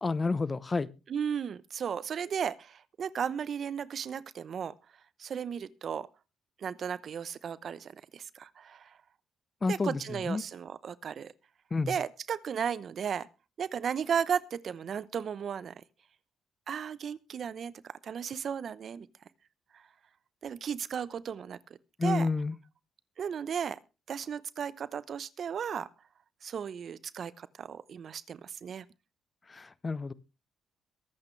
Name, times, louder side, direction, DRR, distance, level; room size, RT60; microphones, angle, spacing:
voice 1, 0.0-0.9 9.6-10.0 10.3-10.4 11.7-12.0 22.0-22.5 29.5-30.1, left 3 dB, 30° left, 0.9 m, -29 dB
voice 2, 1.1-4.7 5.2-6.1 6.6-8.9 9.7-11.3 11.9-13.3 13.6-15.8 16.7-19.1 19.7-19.8 20.4-21.6 22.0-22.3 23.2-23.8 24.1-25.9 26.4-28.8, right 7 dB, 55° right, 0.8 m, -35 dB
22.5 x 8.3 x 3.3 m
cardioid pair, 90°, 0 cm